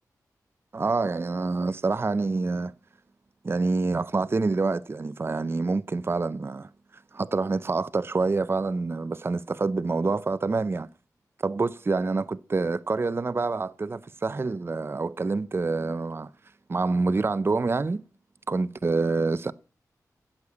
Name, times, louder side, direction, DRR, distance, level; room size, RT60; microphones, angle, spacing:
voice 1, 0.7-2.7 3.4-6.7 7.1-10.9 11.4-16.3 16.7-18.0 18.5-19.5, right 3 dB, 35° right, 0.6 m, -27 dB
15.5 x 6.5 x 8.4 m
cardioid pair, 65°, 7 cm